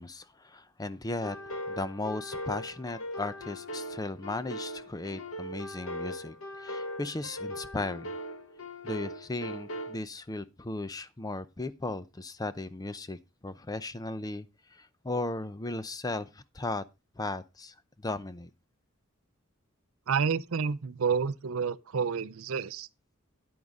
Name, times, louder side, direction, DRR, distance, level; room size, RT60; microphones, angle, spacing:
voice 1, 0.0-1.4 1.7-8.1 8.8-13.2 13.4-14.5 14.7-16.8 17.2-17.7 18.0-18.5, left 2 dB, 20° left, 0.5 m, -36 dB
sound 1, 1.2-10.0, left 1 dB, 70° left, 1.5 m, -40 dB
voice 2, 20.1-22.9, right 6 dB, 70° right, 0.5 m, -29 dB
9.6 x 9.2 x 3.6 m
head